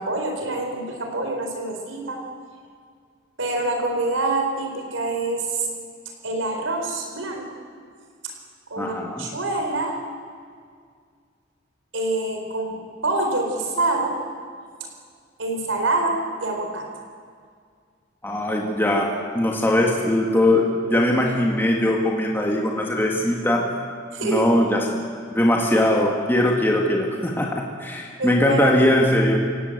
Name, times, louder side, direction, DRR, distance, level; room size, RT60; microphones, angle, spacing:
voice 1, 0.0-2.2 3.4-5.7 6.2-7.5 8.2-8.3 8.7-10.0 11.9-12.8 13.0-14.2 15.4-16.9 24.1-24.5 28.2-29.1, right 2 dB, 85° right, 3 dB, 4.4 m, -26 dB
voice 2, 8.8-9.3 18.2-23.8 24.2-25.0 25.3-29.5, left 1 dB, 10° left, 0 dB, 1.9 m, -21 dB
27.5 x 18.5 x 8.1 m, 2.1 s
head